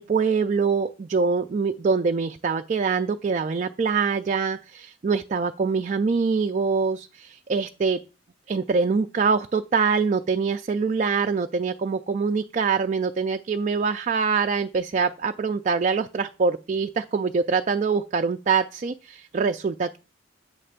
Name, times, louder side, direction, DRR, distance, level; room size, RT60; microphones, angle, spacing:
voice 1, 0.0-8.0 8.5-20.0, right 5 dB, 35° right, 5 dB, 0.3 m, -24 dB
8.6 x 3.3 x 6.5 m, 0.33 s
head